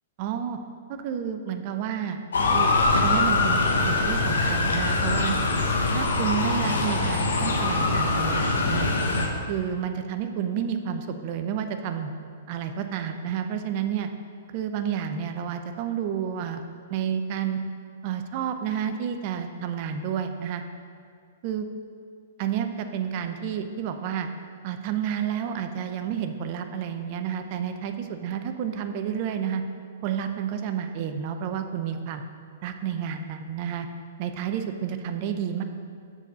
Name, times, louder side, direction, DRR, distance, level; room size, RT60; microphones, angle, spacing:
voice 1, 0.2-0.6 0.9-2.2 2.5-2.7 3.0-5.3 5.9-8.9 9.5-12.1 12.5-14.1 14.5-16.6 16.9-17.6 18.0-20.6 21.4-21.7 22.4-24.3 24.6-29.6 30.0-32.2 32.6-33.9 34.2-35.6, right 8 dB, 45° right, 7 dB, 0.6 m, -30 dB
Motor vehicle (road) / Siren, 2.3-9.3, left 3 dB, 80° left, 1.1 m, -23 dB
7.2 x 4.2 x 6.8 m, 2.2 s
hypercardioid pair, 125°, 0 cm